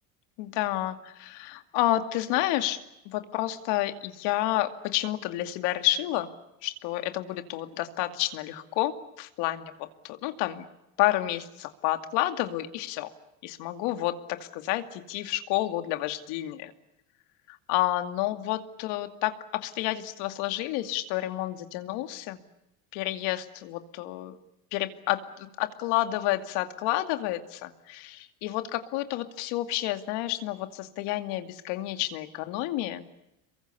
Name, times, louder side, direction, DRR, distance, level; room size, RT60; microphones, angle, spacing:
voice 1, 0.4-2.8 3.0-6.3 6.6-10.6 11.0-13.1 13.4-16.7 17.5-22.4 22.9-24.4 24.7-33.0, left 15 dB, 80° left, 8 dB, 2.5 m, -30 dB
27.5 x 23.0 x 8.4 m, 0.87 s
supercardioid pair, 105°, 41 cm